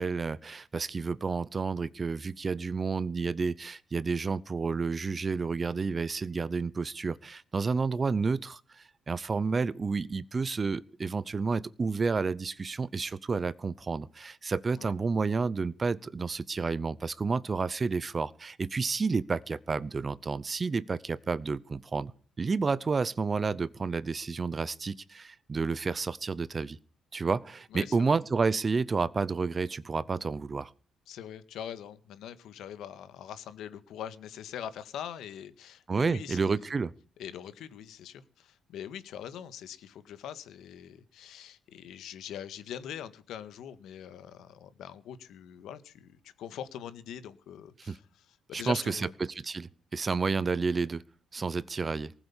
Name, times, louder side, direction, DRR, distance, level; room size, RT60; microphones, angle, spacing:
voice 1, 0.0-22.1 22.4-26.8 27.1-30.7 35.9-36.9 47.8-48.0 48.5-51.0 51.3-52.1, right 4 dB, 20° right, 0.6 m, -30 dB
voice 2, 27.7-28.2 31.1-36.7 37.2-49.1, left 9 dB, 70° left, 1.7 m, -43 dB
19.5 x 8.0 x 7.2 m
cardioid pair, 175°, 0 cm